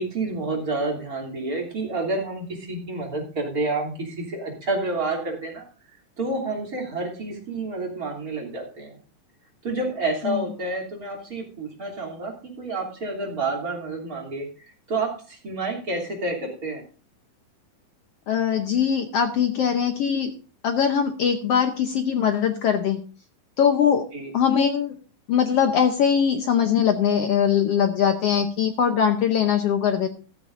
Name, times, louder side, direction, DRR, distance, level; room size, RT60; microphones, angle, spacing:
voice 1, 0.0-5.6 6.2-8.9 9.6-16.8 24.1-24.3, right 2 dB, 25° right, -1 dB, 3.3 m, -29 dB
voice 2, 18.3-20.3 20.6-23.0 23.6-24.1 24.3-24.9 25.3-30.1, left 8 dB, 80° left, 6 dB, 1.3 m, -21 dB
14.5 x 13.5 x 2.6 m, 0.36 s
omnidirectional pair, 4.0 m